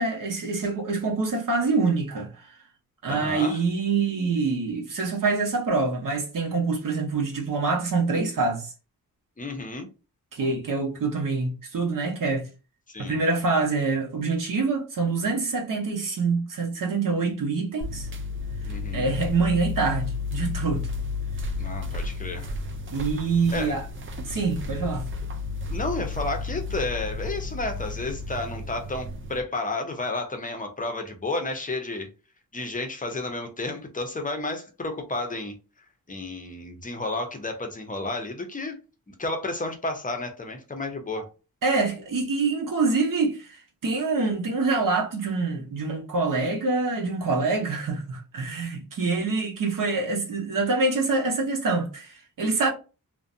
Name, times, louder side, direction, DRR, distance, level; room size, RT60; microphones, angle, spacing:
voice 1, 0.0-2.3 3.0-8.7 10.3-12.5 13.0-18.1 18.9-20.9 22.9-23.9 24.2-25.1 41.6-52.7, right 4 dB, 60° right, 0.8 m, -25 dB
voice 2, 3.1-3.6 9.4-9.9 12.9-13.2 18.7-19.1 21.6-22.5 23.5-23.7 25.7-32.1 32.5-35.5 36.1-38.8 39.1-41.3, left 2 dB, 20° left, 0.6 m, -31 dB
sound 1, 17.8-29.4, left 3 dB, 35° right, 0.4 m, -32 dB
2.5 x 2.1 x 2.5 m
wide cardioid pair, 115°, 36 cm